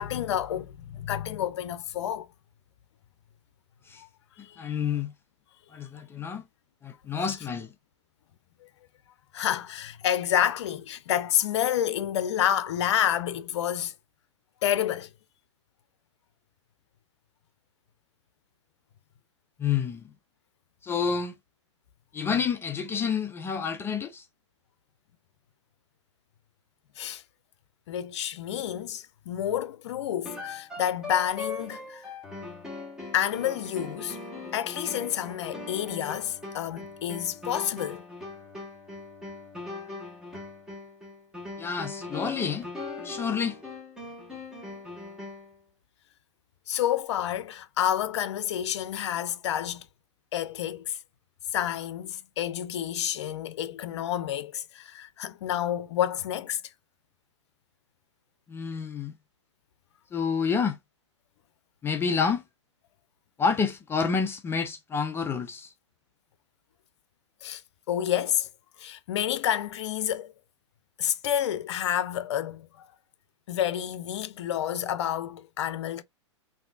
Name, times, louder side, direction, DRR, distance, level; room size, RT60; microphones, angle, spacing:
voice 1, 0.0-2.3 4.0-4.1 4.4-4.8 8.6-8.7 9.3-13.9 14.6-15.1 27.0-27.2 27.9-32.0 33.1-34.2 34.5-38.0 46.7-49.9 50.3-51.0 51.5-56.6 67.4-67.6 67.9-68.5 68.8-70.3 71.0-72.9 73.5-76.0, left 11 dB, 65° left, 0.6 m, -29 dB
voice 2, 4.6-5.1 5.7-6.5 6.8-7.7 19.6-20.1 20.8-21.3 22.1-24.3 41.6-42.7 43.0-43.6 58.5-59.2 60.1-60.8 61.8-62.4 63.4-65.7, left 6 dB, 15° left, 0.4 m, -29 dB
sound 1, 30.2-45.6, left 3 dB, 5° right, 1.3 m, -40 dB
3.5 x 2.7 x 2.3 m
hypercardioid pair, 115°, 16 cm